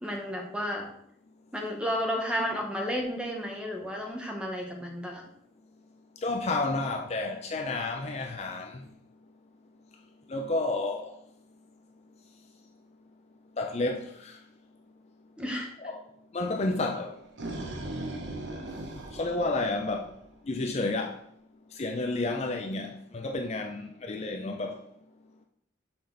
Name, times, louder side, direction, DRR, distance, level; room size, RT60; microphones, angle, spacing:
voice 1, 0.0-0.9 1.5-5.3 15.4-15.7, equal, 5° right, 1.0 m, -32 dB
voice 2, 6.2-8.8 10.3-11.1 13.6-14.4 15.8-16.0 16.3-17.1 19.1-20.1 20.5-21.2 21.8-24.8, left 2 dB, 35° left, 0.4 m, -31 dB
sound 1, 17.0-20.3, right 1 dB, 65° right, 0.9 m, -38 dB
6.0 x 5.1 x 3.9 m
head